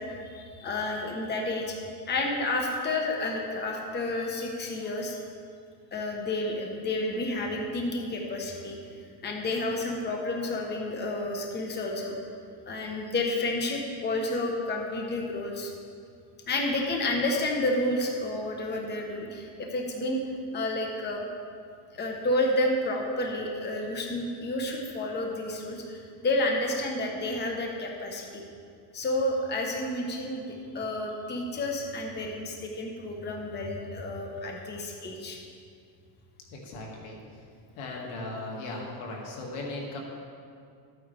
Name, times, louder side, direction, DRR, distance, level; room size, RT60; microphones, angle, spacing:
voice 1, 0.0-5.2 5.9-8.8 9.2-12.1 12.7-15.7 16.5-20.2 20.5-21.3 21.9-28.4 28.9-35.4, left 2 dB, 20° left, 1 dB, 1.0 m, -30 dB
voice 2, 36.5-37.2 37.8-40.0, left 2 dB, 80° left, -1 dB, 2.3 m, -37 dB
13.5 x 9.0 x 3.4 m, 2.3 s
cardioid pair, 135°, 49 cm